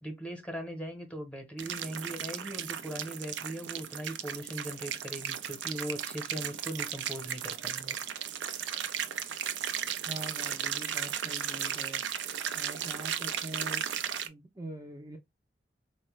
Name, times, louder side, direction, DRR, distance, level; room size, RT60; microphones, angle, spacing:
voice 1, 0.0-8.0, right 1 dB, 5° left, 0.9 m, -39 dB
sound 1, 1.6-14.3, right 9 dB, 90° right, 0.5 m, -35 dB
voice 2, 10.1-12.0 12.5-13.8 14.2-15.2, right 1 dB, 20° right, 0.5 m, -43 dB
4.2 x 2.2 x 3.1 m
head